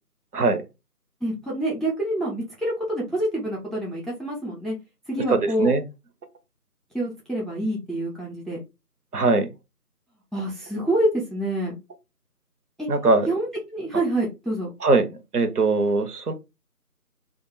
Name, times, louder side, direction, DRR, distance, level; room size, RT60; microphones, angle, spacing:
voice 1, 1.2-4.7 5.1-5.7 6.9-8.6 10.3-11.8 12.8-12.9 13.3-14.7, right 1 dB, ahead, -3 dB, 0.5 m, -27 dB
voice 2, 5.3-5.8 9.1-9.5 12.9-13.3 14.8-15.1 15.3-16.3, right 3 dB, 70° right, 7 dB, 0.7 m, -21 dB
2.4 x 2.2 x 3.0 m, 0.25 s
figure-of-eight pair, 175°, 47 cm